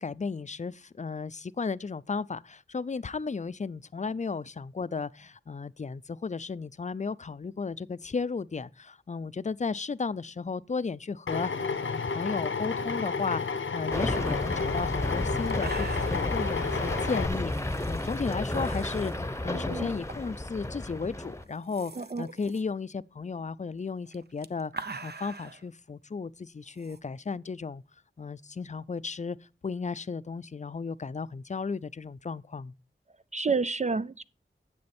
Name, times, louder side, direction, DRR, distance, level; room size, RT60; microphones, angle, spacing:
voice 1, 0.0-13.4 13.7-24.7 25.0-27.8 28.2-29.4 29.6-32.7, left 4 dB, 35° left, 0.4 m, -34 dB
Drill, 11.3-17.3, left 5 dB, 80° left, 0.8 m, -31 dB
sound 1, 13.9-21.4, left 1 dB, 15° left, 0.9 m, -32 dB
sound 2, 14.7-14.8 15.2-15.3 15.5-16.3 17.4-19.1 20.1-20.4 20.7-20.8 21.4-22.6 24.1-25.6 26.8-27.0, right 4 dB, 55° right, 0.8 m, -43 dB
voice 2, 19.5-19.9 22.0-22.2 33.3-34.2, right 4 dB, 35° right, 0.4 m, -29 dB
9.6 x 7.8 x 4.3 m
wide cardioid pair, 50°, 20 cm